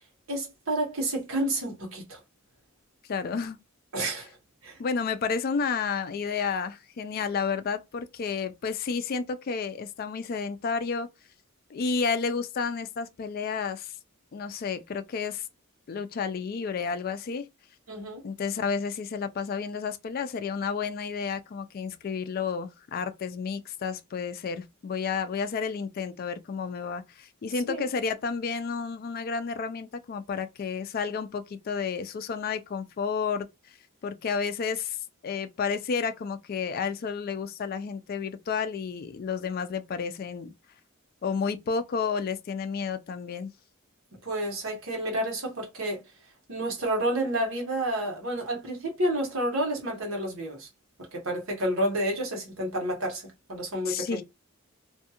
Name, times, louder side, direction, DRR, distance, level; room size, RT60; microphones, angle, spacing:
voice 1, 0.3-2.2 3.9-4.3 4.6-4.8 17.9-18.2 27.7-27.8 44.2-46.0 46.5-50.7 51.1-54.2, right 1 dB, 70° right, 1.2 m, -30 dB
voice 2, 3.1-3.6 4.8-11.1 11.7-13.9 14.3-15.5 15.9-17.5 18.2-33.5 34.0-35.0 35.2-40.5 41.2-43.5 53.9-54.2, left 5 dB, 45° left, 0.3 m, -31 dB
2.5 x 2.3 x 2.8 m
head